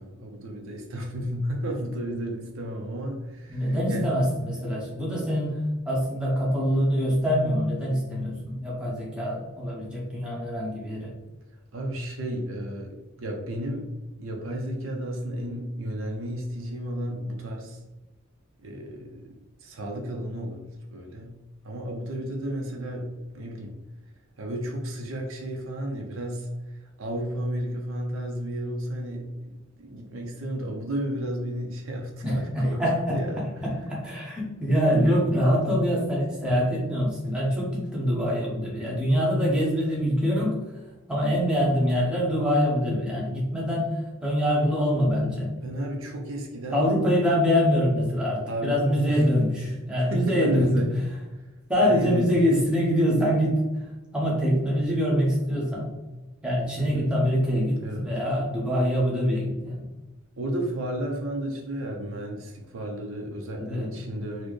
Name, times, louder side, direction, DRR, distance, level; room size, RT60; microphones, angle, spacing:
voice 1, 0.0-4.0 11.7-13.9 14.2-17.8 18.6-21.3 21.6-23.7 24.4-32.8 33.1-33.4 34.1-34.2 45.6-46.9 47.6-47.7 48.5-49.2 50.0-50.9 51.8-52.3 56.8-57.0 57.8-58.1 60.4-64.5, right 1 dB, 70° right, 1 dB, 0.6 m, -33 dB
voice 2, 3.5-11.2 32.2-40.6 41.1-45.5 46.7-50.9 51.7-53.9 54.1-55.9 56.4-59.8 63.6-64.0, equal, 5° right, -6 dB, 0.9 m, -24 dB
4.1 x 2.2 x 3.1 m, 1.1 s
head